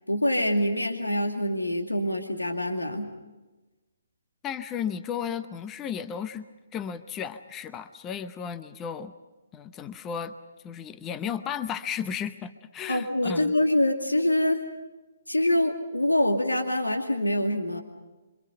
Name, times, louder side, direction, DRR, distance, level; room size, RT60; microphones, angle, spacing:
voice 1, 0.1-3.1 12.9-14.6 15.3-17.8, left 1 dB, 90° left, 3 dB, 2.4 m, -25 dB
voice 2, 4.4-6.5 6.7-9.1 9.5-10.3 10.6-13.5, left 8 dB, 15° left, 11 dB, 0.8 m, -34 dB
27.5 x 25.0 x 5.6 m, 1.2 s
figure-of-eight pair, 135°, 0 cm